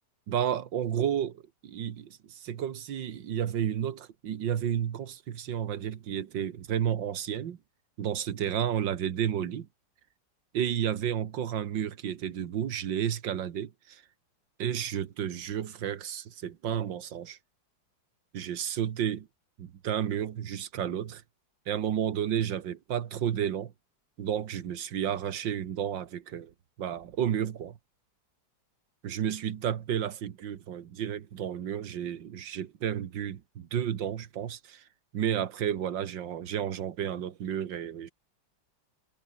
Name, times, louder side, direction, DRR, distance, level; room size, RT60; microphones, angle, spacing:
voice 1, 0.3-7.6 8.0-9.7 10.5-14.0 14.6-17.4 18.3-19.3 19.6-21.2 21.7-23.7 24.2-27.8 29.0-34.8 35.1-38.1, right 9 dB, 80° right, 2.0 m, -32 dB
omnidirectional pair, 2.0 m